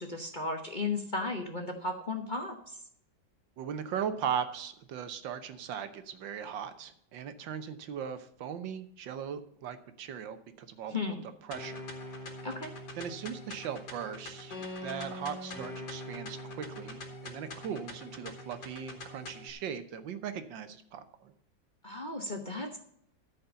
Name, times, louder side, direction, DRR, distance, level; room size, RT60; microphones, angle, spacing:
voice 1, 0.0-2.8 10.9-11.3 12.4-12.7 21.8-22.8, left 3 dB, 35° left, 3 dB, 0.9 m, -35 dB
voice 2, 3.6-11.0 11.4-11.8 12.1-12.3 13.0-14.6 14.8-21.3, right 8 dB, 80° right, 10 dB, 1.6 m, -38 dB
sound 1, 11.5-19.5, left 1 dB, 65° left, 2.2 m, -43 dB
13.5 x 5.3 x 6.8 m, 0.68 s
omnidirectional pair, 2.0 m